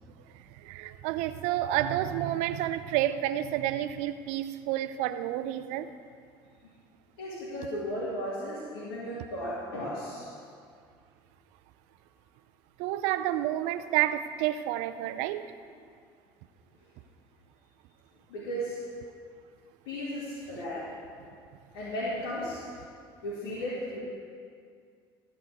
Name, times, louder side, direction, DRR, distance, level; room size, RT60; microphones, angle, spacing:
voice 1, 0.3-5.9 12.8-15.5, right 13 dB, 70° right, 12 dB, 0.6 m, -30 dB
voice 2, 7.2-10.3 18.3-18.9 19.8-20.9 21.7-22.6 23.2-24.0, equal, 80° left, -10 dB, 2.6 m, -35 dB
14.5 x 5.0 x 8.1 m, 2.2 s
hypercardioid pair, 70°, 12 cm